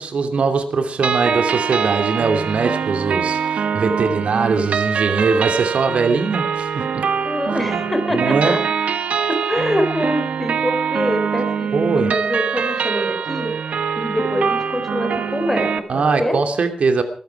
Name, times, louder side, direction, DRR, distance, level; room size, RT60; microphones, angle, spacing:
voice 1, 0.0-7.1 7.7-7.8 8.1-8.5 11.7-12.1 15.9-17.0, right 4 dB, 70° right, 6 dB, 2.9 m, -21 dB
sound 1, 1.0-15.8, right 6 dB, 85° right, 1.3 m, -23 dB
voice 2, 7.2-8.6 9.3-16.4, equal, 10° left, 6 dB, 4.3 m, -24 dB
22.0 x 13.0 x 4.8 m, 0.40 s
wide cardioid pair, 120°, 2 cm